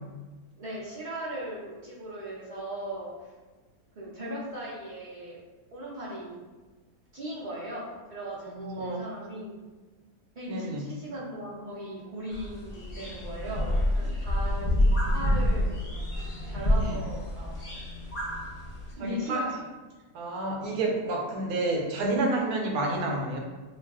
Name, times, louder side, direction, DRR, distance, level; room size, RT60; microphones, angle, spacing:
voice 1, 0.6-3.3 4.0-5.4 5.7-6.4 7.1-9.6 10.4-16.0 16.4-17.8 19.0-19.6, right 1 dB, 60° right, -7 dB, 0.4 m, -38 dB
voice 2, 8.4-9.0 10.5-10.9 16.8-17.0 19.0-19.4 20.1-23.4, right 2 dB, 80° right, 0 dB, 1.0 m, -29 dB
sound 1, 12.3-18.9, left 1 dB, 85° left, 0.3 m, -28 dB
2.4 x 2.3 x 3.4 m, 1.3 s
omnidirectional pair, 1.6 m